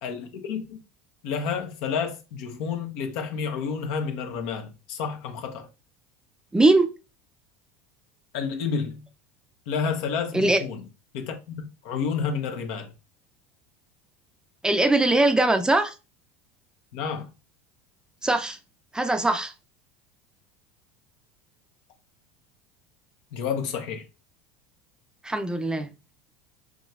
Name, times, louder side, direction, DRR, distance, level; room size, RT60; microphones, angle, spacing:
voice 1, 0.0-0.8 1.2-5.7 8.3-9.1 9.7-10.8 11.1-12.9 16.9-17.3 23.3-24.0, left 6 dB, 70° left, 1.0 m, -30 dB
voice 2, 6.5-6.9 10.3-10.6 14.6-15.9 18.2-18.6 18.9-19.5 25.2-25.9, right 2 dB, 10° right, 0.6 m, -21 dB
5.1 x 3.1 x 2.4 m
hypercardioid pair, 85°, 7 cm